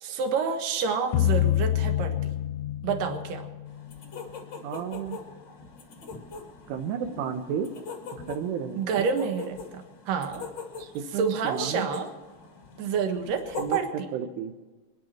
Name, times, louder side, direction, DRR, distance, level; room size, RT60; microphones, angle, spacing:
voice 1, 0.0-2.3 2.8-3.5 8.8-10.5 11.1-12.1 12.8-14.1, right 6 dB, 60° right, 5 dB, 2.4 m, -28 dB
sound 1, 1.1-4.2, left 13 dB, 85° left, 2.9 m, -27 dB
sound 2, 3.7-13.8, left 5 dB, 55° left, 1.3 m, -42 dB
voice 2, 4.6-5.2 6.7-7.7 8.3-9.1 10.8-11.9 13.6-13.8 14.1-14.5, right 8 dB, 80° right, 7 dB, 3.7 m, -32 dB
26.5 x 11.0 x 4.5 m, 1.3 s
omnidirectional pair, 5.6 m